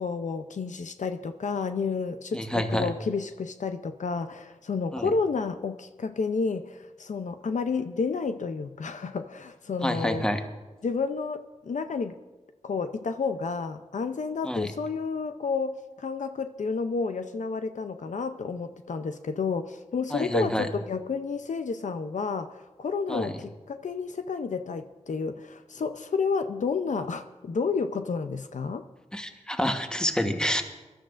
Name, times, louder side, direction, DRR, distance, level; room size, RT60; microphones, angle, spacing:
voice 1, 0.0-10.3 10.8-12.2 12.6-28.8, left 4 dB, 80° left, 9 dB, 0.6 m, -30 dB
voice 2, 2.3-2.9 4.9-5.1 9.8-10.4 14.4-14.7 20.1-20.7 23.1-23.3 29.1-30.6, equal, 5° left, 5 dB, 1.1 m, -28 dB
24.0 x 12.5 x 2.5 m, 1.2 s
wide cardioid pair, 70°, 12 cm